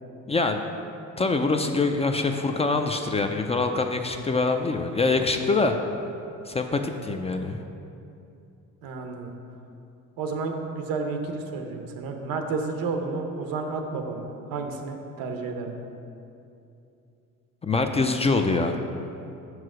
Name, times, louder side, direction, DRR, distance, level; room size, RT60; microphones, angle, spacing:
voice 1, 0.3-0.6 1.2-5.8 6.5-7.6 17.6-18.8, left 3 dB, 20° left, 5 dB, 0.4 m, -24 dB
voice 2, 8.8-9.3 10.2-15.8, right 4 dB, 80° right, 4 dB, 0.9 m, -31 dB
5.7 x 4.7 x 6.2 m, 2.7 s
cardioid pair, 95°, 34 cm